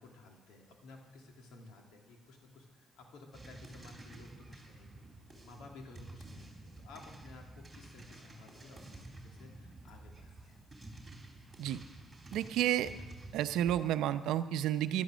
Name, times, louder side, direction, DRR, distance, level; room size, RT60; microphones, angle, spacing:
voice 1, 0.0-5.1 5.4-10.6, left 2 dB, 90° left, 1 dB, 2.7 m, -54 dB
sound 1, 3.3-13.8, right 2 dB, 10° right, 3.9 m, -51 dB
voice 2, 12.3-12.9 13.3-15.0, right 11 dB, 90° right, 11 dB, 0.7 m, -31 dB
16.0 x 11.5 x 6.3 m, 1.2 s
cardioid pair, 90°, 0 cm